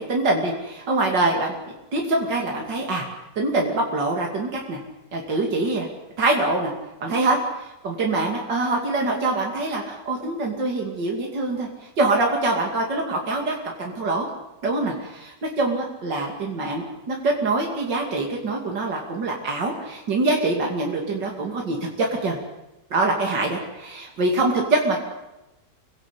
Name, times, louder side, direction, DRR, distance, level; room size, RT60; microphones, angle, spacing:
voice 1, 0.0-1.6 1.9-3.1 3.4-4.8 5.1-5.9 6.2-6.7 7.0-11.7 12.0-14.3 14.6-22.4 22.9-25.0, right 2 dB, 85° right, 0 dB, 3.3 m, -24 dB
26.5 x 16.5 x 8.4 m, 0.98 s
omnidirectional pair, 1.9 m